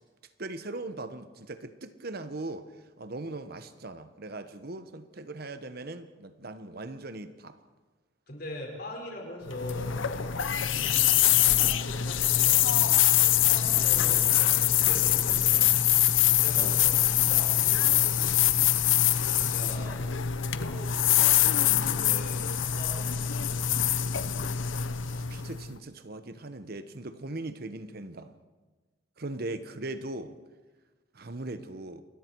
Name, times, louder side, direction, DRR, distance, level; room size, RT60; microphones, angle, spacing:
voice 1, 0.4-2.7 3.0-7.6 16.6-16.8 25.0-28.3 29.2-30.4 31.1-32.0, right 2 dB, 50° right, 10 dB, 1.1 m, -39 dB
voice 2, 8.3-11.2 11.6-12.9 13.4-15.8 16.3-18.4 19.4-20.1 20.5-23.6, left 1 dB, 55° left, 0 dB, 5.5 m, -42 dB
sound 1, 9.5-25.7, left 11 dB, 80° left, 0.9 m, -24 dB
29.0 x 21.0 x 4.7 m, 1.3 s
head